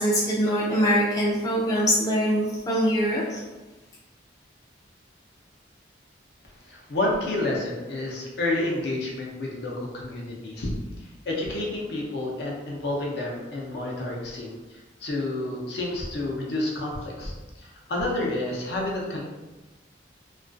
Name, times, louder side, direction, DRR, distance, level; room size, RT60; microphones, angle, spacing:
voice 1, 0.0-3.4, equal, 20° left, -6 dB, 0.3 m, -23 dB
voice 2, 6.6-10.7 11.0-19.2, left 2 dB, 65° left, -3 dB, 0.6 m, -30 dB
2.3 x 2.2 x 2.5 m, 1.2 s
head